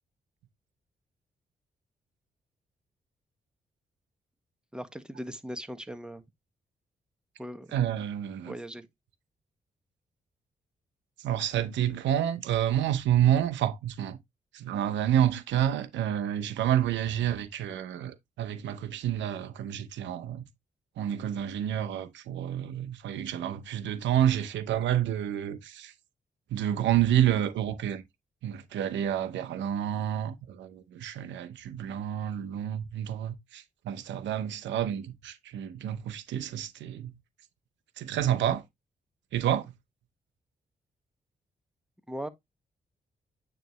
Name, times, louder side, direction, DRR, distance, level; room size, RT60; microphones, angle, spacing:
voice 1, 4.7-6.2 7.4-7.7 8.5-8.9 42.1-42.3, equal, 5° right, 1.5 m, -39 dB
voice 2, 7.7-8.5 11.2-14.2 14.5-20.4 21.0-25.9 26.5-28.0 28.4-37.1 38.0-38.6 39.3-39.7, right 10 dB, 85° right, 0.9 m, -29 dB
9.1 x 3.3 x 3.1 m
supercardioid pair, 50°, 18 cm